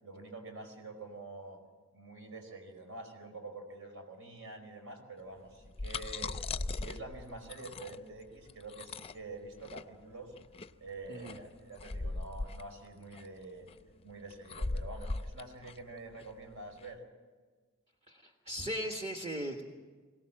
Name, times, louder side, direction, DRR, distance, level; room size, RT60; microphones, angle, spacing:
voice 1, 0.0-1.6 1.9-6.3 6.7-10.3 10.8-13.7 14.0-17.0, right 2 dB, 70° right, 4 dB, 4.7 m, -47 dB
sound 1, 5.5-16.9, left 3 dB, 30° left, 0.5 m, -40 dB
voice 2, 18.1-19.6, equal, 30° right, 1 dB, 1.4 m, -38 dB
22.5 x 17.5 x 7.7 m, 1.4 s
head